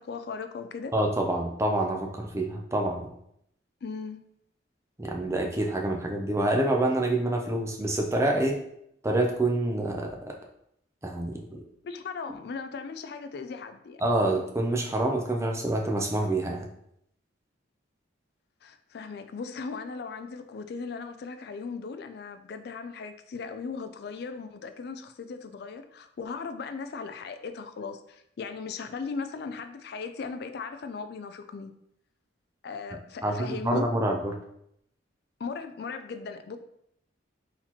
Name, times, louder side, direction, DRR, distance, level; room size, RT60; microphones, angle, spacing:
voice 1, 0.0-0.9 3.8-4.2 11.8-14.0 18.6-31.7 32.6-33.9 35.4-36.6, left 5 dB, 55° left, 9 dB, 0.3 m, -37 dB
voice 2, 0.9-3.1 5.0-8.6 9.0-10.3 11.0-11.6 14.0-16.7 33.2-34.3, right 1 dB, 15° right, 2 dB, 0.5 m, -27 dB
4.2 x 4.0 x 2.9 m, 0.74 s
head